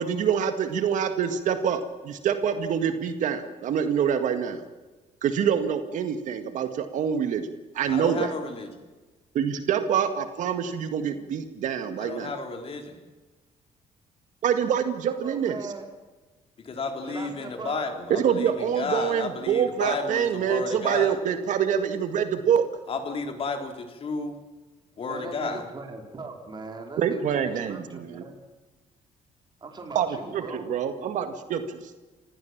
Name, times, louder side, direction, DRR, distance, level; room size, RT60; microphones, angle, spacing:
voice 1, 0.0-4.6 5.2-7.5 7.7-8.3 9.3-12.3 14.4-15.6 18.1-22.6 27.0-28.2 30.0-30.1 30.3-31.8, right 8 dB, 70° right, 8 dB, 1.9 m, -26 dB
voice 2, 7.9-8.7 12.0-13.0 16.6-21.2 22.9-24.4 25.0-25.6, left 4 dB, 45° left, 4 dB, 3.7 m, -32 dB
voice 3, 15.2-15.9 17.0-17.8 25.1-28.4 29.6-30.6, right 3 dB, 35° right, 3 dB, 4.4 m, -40 dB
28.0 x 16.0 x 7.4 m, 1.2 s
cardioid pair, 115°, 13 cm